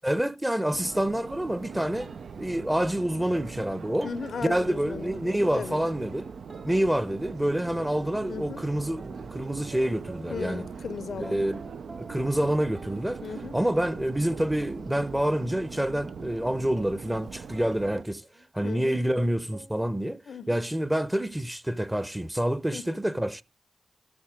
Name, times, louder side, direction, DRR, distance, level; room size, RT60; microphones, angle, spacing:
voice 1, 0.0-2.1 2.4-4.1 4.4-6.3 6.6-10.7 11.3-11.6 12.0-13.2 13.5-18.2 18.5-20.2 20.5-23.4, right 1 dB, 10° right, 0.8 m, -27 dB
Subway metro underground, 0.7-18.0, right 6 dB, 75° right, 0.4 m, -41 dB
sound 1, 2.0-2.5 2.7-5.2 5.6-6.8 7.2-7.3 7.9-8.5 9.0-10.9 11.2-12.4 12.7-13.5 13.8-18.5 18.8-20.0, right 2 dB, 45° right, 1.0 m, -50 dB
voice 2, 4.0-5.8 8.3-8.6 10.3-11.5 13.2-13.6 18.6-19.0 20.3-20.6 22.7-23.0, left 6 dB, 75° left, 0.6 m, -37 dB
12.5 x 4.2 x 5.0 m
supercardioid pair, 40°, 0 cm